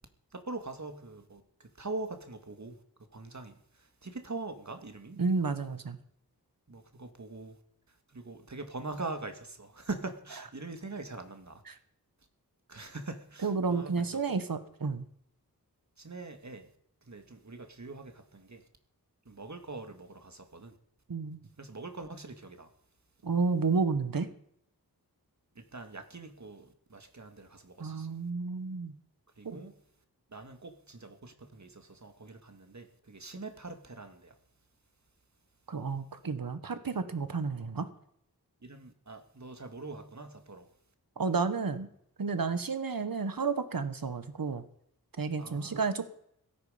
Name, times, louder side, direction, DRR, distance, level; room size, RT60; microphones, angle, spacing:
voice 1, 0.3-2.8 3.1-5.2 6.7-7.6 7.9-11.6 12.7-14.4 16.0-16.7 17.0-18.6 19.3-20.8 21.6-22.7 25.6-28.2 29.4-29.7 30.3-34.4 38.6-40.7 45.4-45.8, right 3 dB, 50° right, 2.0 m, -43 dB
voice 2, 5.2-6.0 11.7-11.8 13.4-15.0 21.1-21.4 23.2-24.3 27.8-28.9 29.4-29.6 35.7-37.9 41.2-41.9 42.2-44.6 45.2-46.1, right 4 dB, 65° right, 1.4 m, -31 dB
17.0 x 13.0 x 5.1 m
wide cardioid pair, 55°, 37 cm